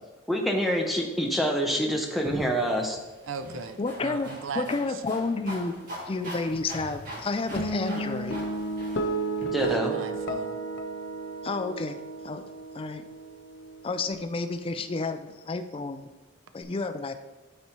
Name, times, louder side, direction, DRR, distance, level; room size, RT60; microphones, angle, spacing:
voice 1, 0.3-3.0 9.5-10.0, equal, ahead, 0 dB, 0.8 m, -26 dB
sound 1, 2.2-9.5, equal, 40° right, 1.9 m, -41 dB
voice 2, 3.3-4.6 9.7-10.5, right 5 dB, 65° right, 9 dB, 0.5 m, -37 dB
voice 3, 3.8-5.8 6.1-8.5 11.4-12.0 12.2-12.4 12.7-13.0 13.8-16.1 16.5-17.1, left 3 dB, 25° left, 8 dB, 0.3 m, -31 dB
sound 2, 7.6-14.1, right 2 dB, 55° left, 0.7 m, -33 dB
12.0 x 4.2 x 3.0 m, 1.2 s
head